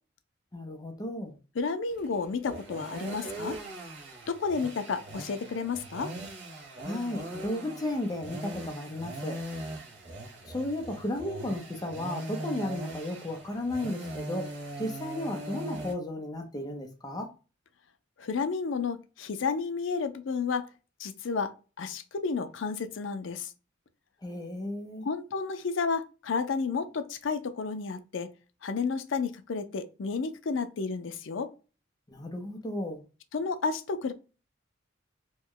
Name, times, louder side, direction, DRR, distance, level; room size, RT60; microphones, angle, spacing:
voice 1, 0.5-1.4 6.8-9.4 10.4-17.3 24.2-25.1 32.1-33.0, left 1 dB, 20° left, 0.6 m, -34 dB
voice 2, 1.6-3.6 4.3-6.1 18.2-20.7 21.0-23.5 25.0-28.3 28.6-31.5 33.3-34.1, left 5 dB, 70° left, 0.5 m, -31 dB
sound 1, 1.9-15.9, right 1 dB, 60° right, 0.9 m, -40 dB
3.0 x 2.1 x 3.6 m
head